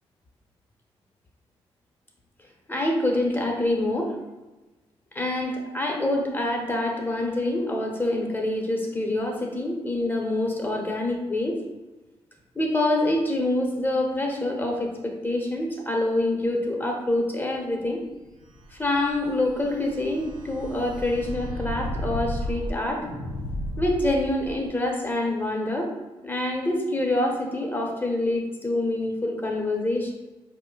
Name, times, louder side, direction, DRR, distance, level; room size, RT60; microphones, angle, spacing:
voice 1, 2.7-4.1 5.1-11.6 12.5-18.0 18.7-23.1 23.8-25.9 26.2-30.1, left 1 dB, 15° left, 1 dB, 1.0 m, -26 dB
sound 1, 18.3-24.7, equal, 90° right, 0.6 m, -34 dB
4.7 x 2.2 x 3.9 m, 1.1 s
supercardioid pair, 50°, 12 cm